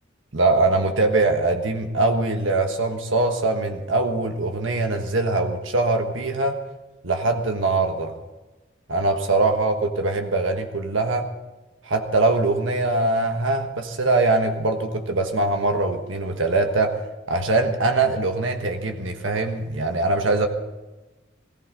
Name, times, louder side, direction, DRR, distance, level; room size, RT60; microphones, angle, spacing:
voice 1, 0.3-6.6 7.0-8.1 8.9-11.3 11.8-16.9 17.3-20.5, right 2 dB, 80° right, 5 dB, 1.4 m, -22 dB
18.5 x 17.0 x 4.0 m, 1.1 s
head